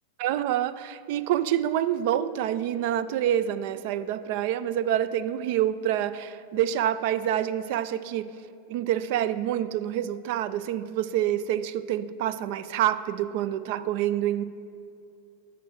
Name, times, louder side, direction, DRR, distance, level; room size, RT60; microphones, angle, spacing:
voice 1, 0.2-8.3 8.7-14.4, right 11 dB, 50° right, 14 dB, 0.3 m, -27 dB
6.7 x 6.3 x 7.3 m, 2.6 s
figure-of-eight pair, 90°, 0 cm